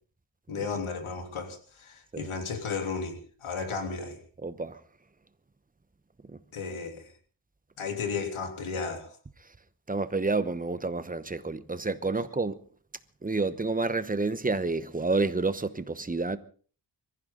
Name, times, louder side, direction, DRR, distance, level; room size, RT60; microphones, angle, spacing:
voice 1, 0.5-4.2 6.5-7.1 7.8-9.2, left 5 dB, 90° left, 3.3 m, -34 dB
voice 2, 4.4-4.8 6.3-6.4 9.9-12.6 13.2-16.4, right 3 dB, 20° right, 0.9 m, -29 dB
23.5 x 15.0 x 3.9 m
wide cardioid pair, 140°, 48 cm